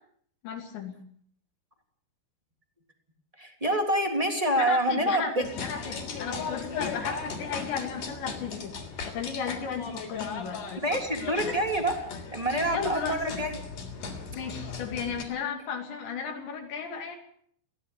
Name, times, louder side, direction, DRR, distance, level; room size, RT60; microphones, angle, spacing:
voice 1, 0.4-0.9 4.6-8.7 9.0-10.8 11.2-11.6 12.5-13.2 14.3-17.2, left 6 dB, 80° left, 2 dB, 5.0 m, -35 dB
voice 2, 3.4-5.4 10.8-11.9 12.3-13.6, right 1 dB, 10° right, 3 dB, 2.3 m, -26 dB
sound 1, 5.4-15.2, left 5 dB, 50° left, 4.7 m, -37 dB
21.0 x 17.0 x 8.4 m, 0.62 s
omnidirectional pair, 5.1 m